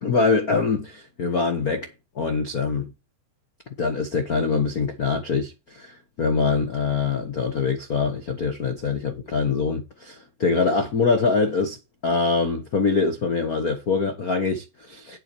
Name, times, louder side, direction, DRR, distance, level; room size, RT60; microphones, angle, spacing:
voice 1, 0.0-1.9 2.1-2.9 3.8-11.8 12.0-15.2, left 4 dB, 80° left, 0.8 m, -24 dB
8.6 x 8.3 x 4.7 m
omnidirectional pair, 3.9 m